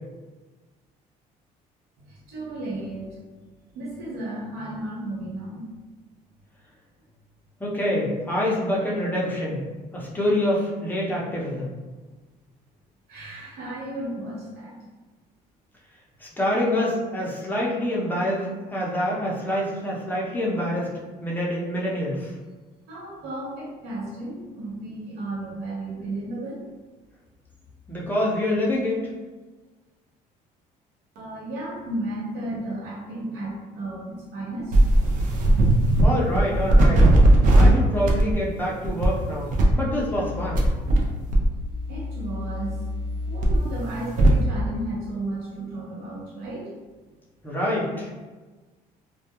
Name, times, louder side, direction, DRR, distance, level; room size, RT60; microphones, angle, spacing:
voice 1, 2.1-3.2 3.7-5.7 13.1-14.8 22.9-26.7 31.1-34.8 41.9-42.8 43.3-46.7, right 1 dB, 85° right, -5 dB, 0.8 m, -34 dB
voice 2, 7.6-9.6 9.9-11.7 16.2-20.9 21.2-22.3 27.9-29.0 36.0-37.1 37.5-40.7 47.4-48.1, left 1 dB, 10° left, -5 dB, 0.6 m, -26 dB
sound 1, 34.7-36.1 36.3-37.7 38.1-38.3 38.8-39.1 39.5-41.0 41.3-44.4, right 1 dB, 55° right, 0.5 m, -19 dB
2.2 x 2.2 x 2.9 m, 1.3 s
cardioid pair, 110°, 16 cm